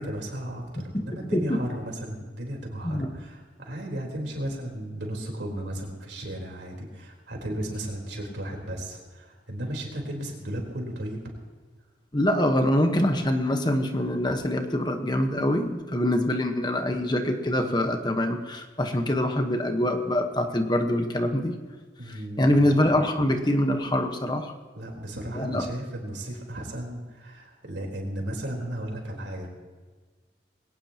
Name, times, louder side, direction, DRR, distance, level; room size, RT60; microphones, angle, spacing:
voice 1, 0.0-11.2 22.0-22.7 24.7-29.5, right 1 dB, 75° right, 0 dB, 4.0 m, -35 dB
voice 2, 1.2-1.6 2.8-3.1 12.1-21.6 22.1-24.6 25.3-25.7, left 1 dB, 25° left, 5 dB, 1.2 m, -24 dB
21.5 x 18.5 x 2.9 m, 1.4 s
head